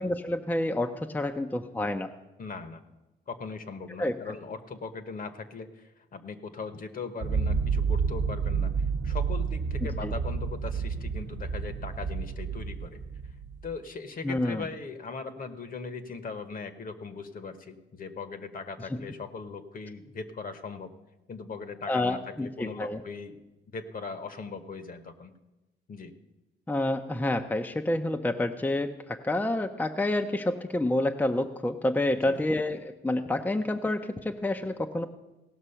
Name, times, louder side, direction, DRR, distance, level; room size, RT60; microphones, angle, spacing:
voice 1, 0.0-2.1 4.0-4.3 9.8-10.1 14.2-14.6 21.9-23.0 26.7-35.1, left 1 dB, 10° left, 5 dB, 0.5 m, -28 dB
voice 2, 2.4-2.8 3.3-13.0 13.6-20.9 21.3-23.4 23.7-25.3 25.9-26.1 32.2-32.5, left 4 dB, 45° left, 10 dB, 1.0 m, -39 dB
sound 1, 7.2-13.7, right 5 dB, 60° right, 0.8 m, -30 dB
17.0 x 6.1 x 5.6 m, 1.1 s
cardioid pair, 90°, 20 cm